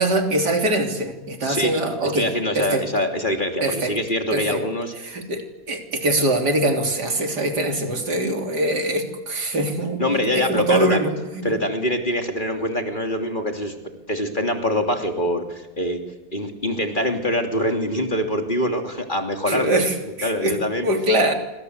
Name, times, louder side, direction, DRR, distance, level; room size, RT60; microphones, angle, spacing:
voice 1, 0.0-2.3 2.6-2.8 3.6-3.9 4.3-4.6 5.0-11.5 19.5-20.6 20.8-21.3, right 1 dB, 60° right, 4 dB, 3.9 m, -23 dB
voice 2, 1.4-1.7 2.0-4.9 10.0-11.0 11.4-13.7 14.1-16.0 16.3-20.9, left 1 dB, 25° left, 4 dB, 3.1 m, -24 dB
26.5 x 26.0 x 8.2 m, 1.0 s
omnidirectional pair, 2.0 m